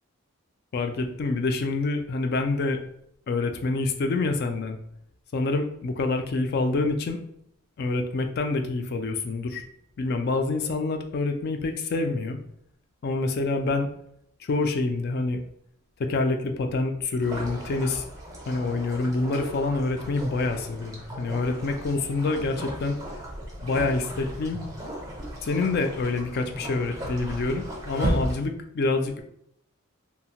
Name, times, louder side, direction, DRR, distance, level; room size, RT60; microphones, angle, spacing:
voice 1, 0.7-2.8 3.3-4.8 5.3-7.2 7.8-9.6 10.0-12.4 13.0-13.9 14.4-15.4 16.0-18.1 18.5-23.0 23.6-24.6 25.4-29.2, left 3 dB, 45° left, 6 dB, 0.3 m, -27 dB
sound 1, 17.2-28.4, right 1 dB, 15° right, 0.6 m, -35 dB
2.7 x 2.1 x 2.8 m, 0.73 s
head